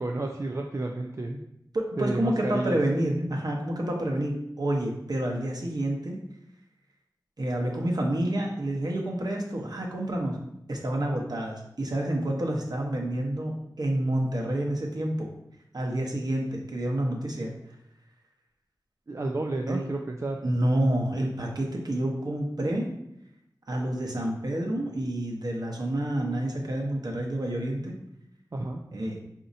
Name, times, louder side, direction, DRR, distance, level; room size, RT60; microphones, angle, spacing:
voice 1, 0.0-1.4 2.0-2.8 19.1-20.4 28.5-28.8, right 2 dB, 40° right, 2 dB, 0.4 m, -31 dB
voice 2, 1.7-6.2 7.4-10.4 10.7-15.3 15.7-17.5 19.7-19.9 20.4-22.9 23.7-27.9 28.9-29.2, right 1 dB, 60° right, -1 dB, 1.0 m, -28 dB
4.9 x 2.8 x 2.7 m, 0.80 s
cardioid pair, 40°, 8 cm